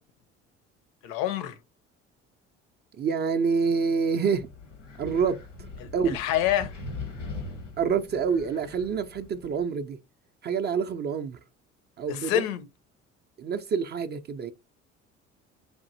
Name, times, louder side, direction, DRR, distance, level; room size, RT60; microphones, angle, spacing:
voice 1, 1.0-1.6 5.8-6.7 12.1-12.6, left 12 dB, 65° left, 0.7 m, -27 dB
voice 2, 3.0-4.5 5.0-5.4 5.9-6.2 7.8-10.0 10.4-11.4 12.0-12.4 13.4-14.5, right 6 dB, 30° right, 0.4 m, -27 dB
Wind, 4.3-9.6, left 3 dB, 90° left, 1.2 m, -41 dB
4.8 x 2.5 x 2.6 m
hypercardioid pair, 55°, 35 cm